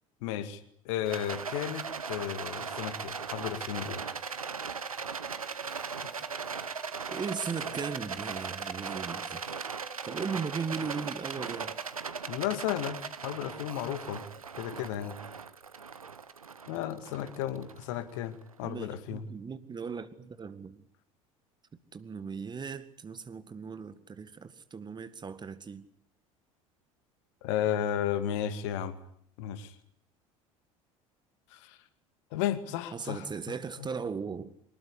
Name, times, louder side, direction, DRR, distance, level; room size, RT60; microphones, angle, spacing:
voice 1, 0.2-0.6 0.9-4.1 12.3-14.2 14.6-15.2 16.7-19.2 27.4-29.0 29.4-29.8 31.5-31.8 32.3-33.3 33.8-33.9, left 10 dB, 60° left, 2.1 m, -33 dB
Rattle, 1.0-18.4, right 5 dB, 85° right, 1.1 m, -38 dB
voice 2, 7.1-9.4 10.1-11.8 18.6-20.8 21.9-25.9 32.9-34.5, right 5 dB, 25° right, 1.9 m, -37 dB
24.5 x 20.5 x 9.8 m
figure-of-eight pair, 65°, 18 cm